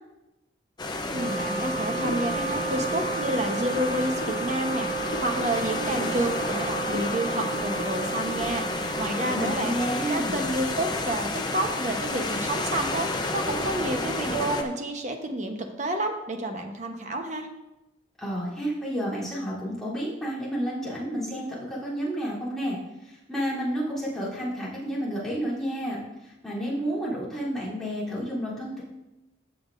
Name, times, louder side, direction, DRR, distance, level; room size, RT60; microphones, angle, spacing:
sound 1, 0.8-14.6, left 2 dB, 20° left, 0.7 m, -31 dB
voice 1, 1.1-9.8 10.1-17.5, right 1 dB, 40° right, 4 dB, 1.0 m, -30 dB
Wind instrument woodwind instrument, 1.1-10.6, right 4 dB, 60° right, 1.8 m, -33 dB
sound 2, 1.9-9.7, left 3 dB, 90° left, 0.4 m, -40 dB
voice 2, 9.3-10.4 18.2-22.8 23.0-28.8, equal, ahead, -10 dB, 3.3 m, -30 dB
15.0 x 7.0 x 2.6 m, 0.98 s
head